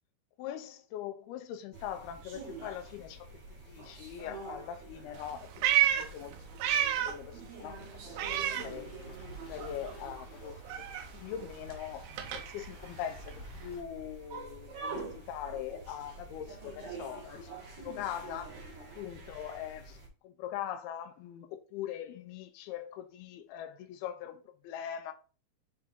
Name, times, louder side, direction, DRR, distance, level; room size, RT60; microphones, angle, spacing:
voice 1, 0.4-3.3 3.7-6.4 7.0-7.9 8.3-8.9 9.5-10.9 11.1-18.6 19.0-25.1, left 10 dB, 85° left, 2.2 m, -42 dB
sound 1, 1.7-20.1, right 3 dB, 50° right, 2.5 m, -47 dB
Meow, 5.1-7.3 7.6-9.3 9.6-13.8, right 11 dB, 80° right, 2.3 m, -32 dB
sound 2, 8.2-13.8, equal, 60° left, 2.4 m, -52 dB
6.9 x 3.6 x 4.3 m
omnidirectional pair, 5.3 m